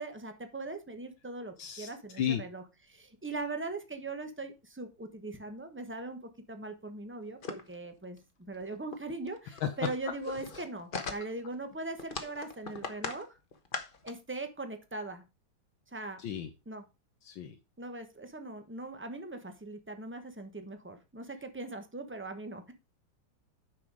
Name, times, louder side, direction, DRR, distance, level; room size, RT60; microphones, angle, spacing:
voice 1, 0.0-2.6 2.9-6.2 6.5-8.2 8.5-13.3 14.0-15.2 15.9-16.2 16.7-16.8 17.8-22.7, right 2 dB, 10° right, 7 dB, 0.8 m, -40 dB
voice 2, 1.6-2.4 9.5-9.7 16.2-16.5 17.2-17.6, left 9 dB, 80° left, 6 dB, 1.7 m, -34 dB
sound 1, 7.4-7.7 8.2-8.3 8.5-8.6 8.9-9.0 9.3-11.5 12.0-13.2 13.5-14.1, left 4 dB, 35° left, 1.0 m, -40 dB
9.1 x 5.7 x 4.8 m, 0.27 s
omnidirectional pair, 2.1 m